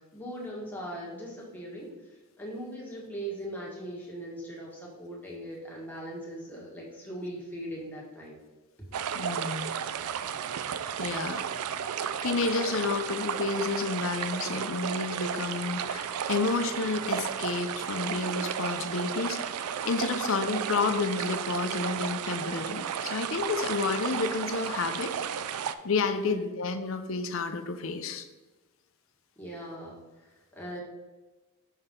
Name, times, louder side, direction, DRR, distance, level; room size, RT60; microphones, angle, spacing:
voice 1, 0.0-8.4 26.1-26.6 29.4-30.8, right 1 dB, 10° left, -5 dB, 1.6 m, -40 dB
sound 1, 8.9-25.8, right 8 dB, 85° right, 0.4 m, -33 dB
voice 2, 9.1-9.7 11.0-11.4 12.2-25.1 25.8-28.3, left 4 dB, 60° left, 8 dB, 0.6 m, -30 dB
6.2 x 5.5 x 3.7 m, 1.2 s
head